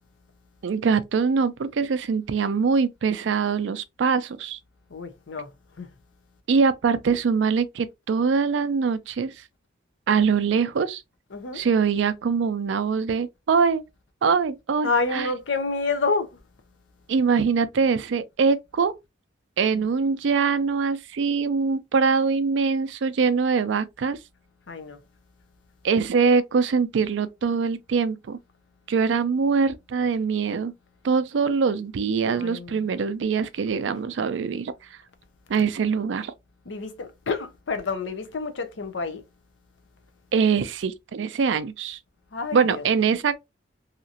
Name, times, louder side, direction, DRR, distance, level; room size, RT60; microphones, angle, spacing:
voice 1, 0.6-4.6 6.5-9.3 10.1-11.0 11.5-13.8 14.2-15.3 17.1-19.0 19.6-24.2 25.8-28.4 28.9-30.7 31.0-34.7 35.5-36.3 40.3-42.0 42.5-43.4, right 5 dB, 70° right, 0.4 m, -23 dB
voice 2, 4.9-5.5 5.8-5.9 11.3-11.6 14.8-16.4 19.7-19.9 24.7-25.0 32.3-32.9 36.7-39.2 42.3-42.9, left 4 dB, 75° left, 0.6 m, -29 dB
2.8 x 2.5 x 2.7 m
head